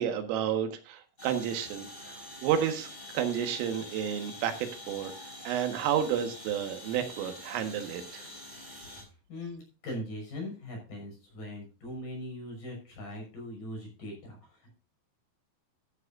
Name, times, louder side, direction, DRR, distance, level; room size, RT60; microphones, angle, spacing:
voice 1, 0.0-2.2 2.4-5.1 5.5-8.3, right 9 dB, 85° right, 7 dB, 4.2 m, -31 dB
sound 1, 1.2-9.0, left 1 dB, 10° left, 4.2 m, -46 dB
voice 2, 9.3-14.7, left 1 dB, 40° left, 1 dB, 7.5 m, -40 dB
14.0 x 11.5 x 2.6 m, 0.35 s
omnidirectional pair, 5.7 m